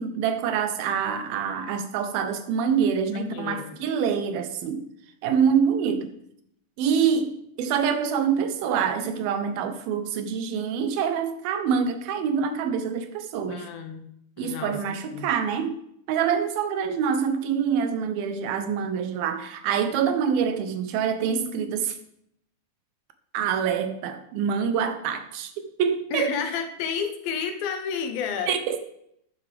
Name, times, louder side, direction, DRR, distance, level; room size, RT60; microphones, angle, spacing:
voice 1, 0.0-4.8 5.2-6.1 6.8-13.7 14.4-15.8 16.1-22.0 23.3-25.5 25.8-26.4 28.5-28.8, right 7 dB, 80° right, 8 dB, 2.7 m, -26 dB
voice 2, 3.1-3.8 13.5-14.1 14.4-15.3 26.1-28.5, left 6 dB, 75° left, 6 dB, 2.8 m, -31 dB
12.5 x 8.6 x 3.4 m, 0.72 s
omnidirectional pair, 4.3 m